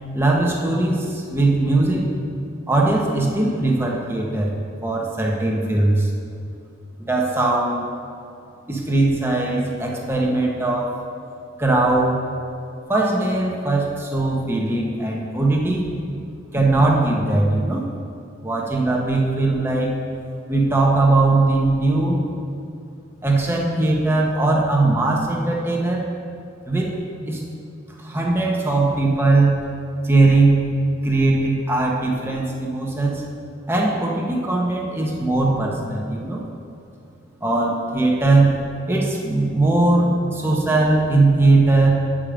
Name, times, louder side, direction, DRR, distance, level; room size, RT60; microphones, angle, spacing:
voice 1, 0.1-2.1 2.7-4.5 4.8-6.1 7.0-7.9 8.7-10.9 11.6-12.2 12.9-15.9 16.5-17.8 18.4-19.9 20.5-22.2 23.2-26.1 26.7-26.9 27.3-27.4 28.0-29.6 30.0-30.6 31.0-33.2 33.7-36.4 37.4-38.5 38.9-41.9, right 2 dB, 10° right, -2 dB, 1.0 m, -19 dB
8.3 x 5.1 x 6.2 m, 2.5 s
head